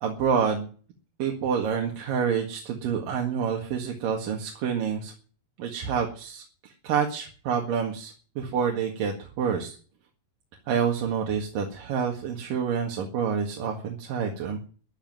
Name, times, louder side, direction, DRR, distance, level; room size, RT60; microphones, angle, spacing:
voice 1, 0.0-0.7 1.2-5.1 5.6-9.8 10.7-14.6, right 7 dB, 65° right, 1 dB, 3.4 m, -28 dB
11.5 x 11.5 x 9.2 m, 0.40 s
omnidirectional pair, 4.4 m